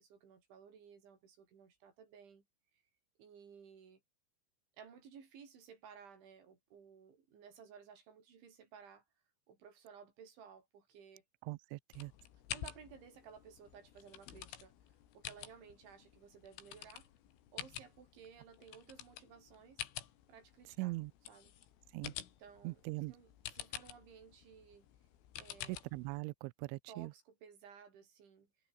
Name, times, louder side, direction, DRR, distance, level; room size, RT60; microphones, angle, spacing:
voice 1, 0.0-2.4 3.2-4.0 4.8-9.1 9.5-11.2 12.5-14.7 15.1-17.1 17.5-19.9 20.3-21.0 21.3-21.5 22.4-24.9 25.4-25.8 26.9-28.5, right 7 dB, 65° right, 7.2 m, -57 dB
voice 2, 11.5-12.1 20.8-21.1 21.9-22.1 22.6-23.1 25.7-27.1, right 22 dB, 90° right, 2.7 m, -41 dB
sound 1, 11.9-26.2, left 11 dB, 75° left, 4.9 m, -50 dB
omnidirectional pair, 6.0 m